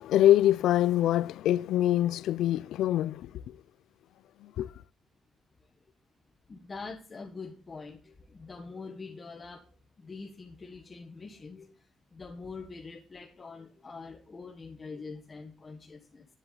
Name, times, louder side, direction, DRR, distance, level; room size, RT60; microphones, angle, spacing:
voice 1, 0.0-3.2 4.6-4.7, left 12 dB, 90° left, 0.4 m, -24 dB
voice 2, 6.5-9.7 10.0-16.3, left 4 dB, 25° left, 1.3 m, -44 dB
11.0 x 10.5 x 3.9 m
cardioid pair, 165°, 0 cm